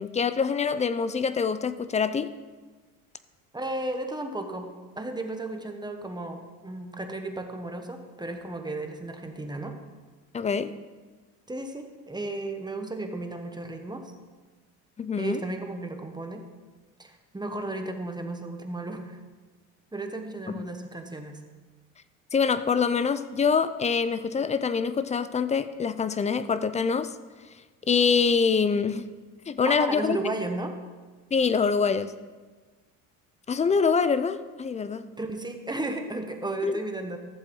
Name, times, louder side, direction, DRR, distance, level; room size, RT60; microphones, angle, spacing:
voice 1, 0.0-2.3 10.3-10.7 15.0-15.4 20.5-20.7 22.3-27.1 27.9-29.1 29.5-30.2 31.3-32.1 33.5-35.1 36.6-36.8, left 5 dB, 15° left, 14 dB, 0.4 m, -25 dB
voice 2, 3.5-4.7 5.0-9.8 11.5-14.1 15.2-16.4 17.0-19.2 19.9-21.4 29.7-30.7 35.2-37.2, right 2 dB, 10° right, 5 dB, 1.1 m, -34 dB
14.0 x 7.4 x 3.8 m, 1.3 s
supercardioid pair, 90°, 40 cm